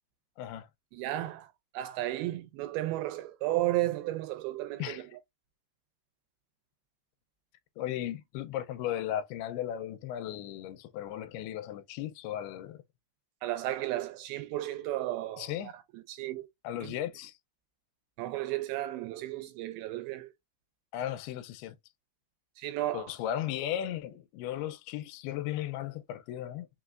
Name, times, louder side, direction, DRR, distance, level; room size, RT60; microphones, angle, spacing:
voice 1, 0.4-0.7 4.8-5.1 7.8-12.8 15.4-15.7 16.6-17.4 20.9-21.8 22.9-26.7, left 11 dB, 85° left, 2.5 m, -36 dB
voice 2, 0.9-5.0 13.4-15.7 16.1-16.5 16.8-16.9 18.2-20.3 22.6-23.1, right 15 dB, 80° right, 2.3 m, -33 dB
5.9 x 3.0 x 2.4 m
omnidirectional pair, 4.6 m